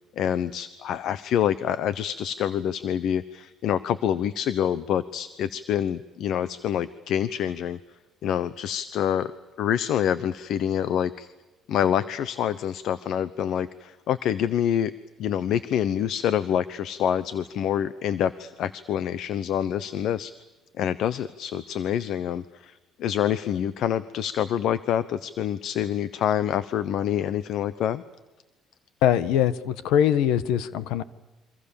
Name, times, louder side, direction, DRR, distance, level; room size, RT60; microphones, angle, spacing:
voice 1, 0.2-7.8 8.2-9.3 9.6-11.3 11.7-14.9 15.2-20.3 20.8-28.0, left 9 dB, 65° left, 15 dB, 0.9 m, -26 dB
voice 2, 29.0-31.0, left 10 dB, 85° left, 15 dB, 1.3 m, -22 dB
29.0 x 24.5 x 7.1 m, 1.1 s
cardioid pair, 130°, 0 cm